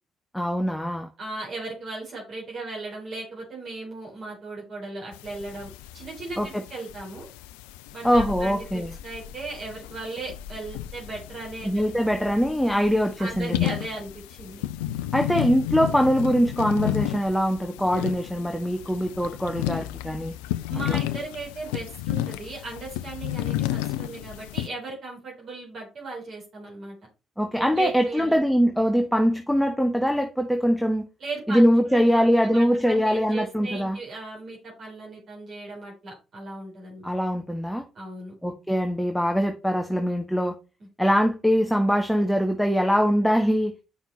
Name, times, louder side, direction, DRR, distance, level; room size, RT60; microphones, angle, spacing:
voice 1, 0.3-1.1 6.4-6.6 8.0-8.9 11.6-13.7 15.1-20.3 20.9-21.0 27.4-31.1 31.5-34.0 37.0-37.8 38.4-40.6 41.0-43.7, equal, 5° left, 1.4 m, -22 dB
voice 2, 1.2-7.3 7.9-12.0 13.2-14.6 20.7-26.9 27.6-28.4 31.2-37.1 37.9-38.3, right 3 dB, 55° right, 4.2 m, -37 dB
sound 1, 5.1-24.7, left 14 dB, 75° left, 0.5 m, -33 dB
8.5 x 5.8 x 4.2 m
hypercardioid pair, 45°, 0 cm